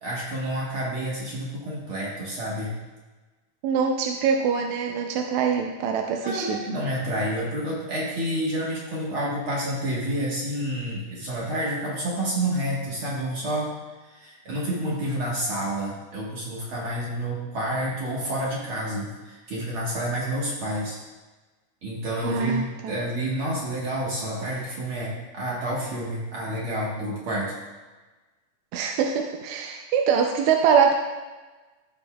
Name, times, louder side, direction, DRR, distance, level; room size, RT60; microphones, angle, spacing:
voice 1, 0.0-2.7 6.2-13.7 14.0-21.0 21.8-27.5, right 1 dB, 50° right, -5 dB, 1.7 m, -29 dB
voice 2, 3.6-6.6 22.2-22.9 28.7-30.9, right 6 dB, 80° right, 3 dB, 1.7 m, -23 dB
14.5 x 5.2 x 2.3 m, 1.2 s
omnidirectional pair, 3.7 m